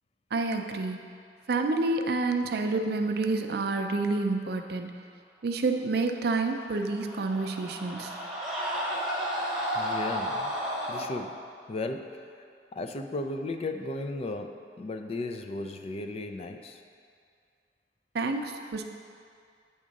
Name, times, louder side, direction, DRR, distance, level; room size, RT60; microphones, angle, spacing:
voice 1, 0.3-1.0 1.5-4.9 5.4-8.2 18.1-18.8, right 3 dB, 60° right, 5 dB, 0.5 m, -28 dB
Screaming, 6.6-11.1, equal, ahead, 1.0 m, -32 dB
voice 2, 9.7-10.5 10.9-11.4 11.7-12.4 12.7-16.8, left 2 dB, 35° left, 6 dB, 0.3 m, -35 dB
8.6 x 3.6 x 5.2 m, 2.3 s
head